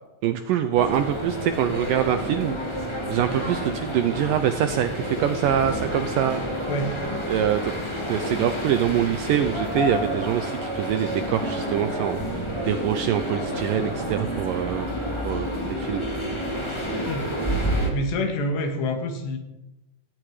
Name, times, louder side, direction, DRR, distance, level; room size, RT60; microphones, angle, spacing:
voice 1, 0.2-2.6 3.1-6.7 7.3-14.9 15.2-16.0, right 10 dB, 80° right, 9 dB, 2.0 m, -25 dB
sound 1, 0.7-17.9, equal, 10° left, 1.5 m, -29 dB
sound 2, 1.5-17.7, left 1 dB, 25° right, 2.2 m, -46 dB
voice 2, 6.7-7.0 17.0-17.3 17.9-19.4, left 1 dB, 85° left, 5 dB, 4.3 m, -27 dB
17.0 x 17.0 x 5.0 m, 0.99 s
omnidirectional pair, 4.7 m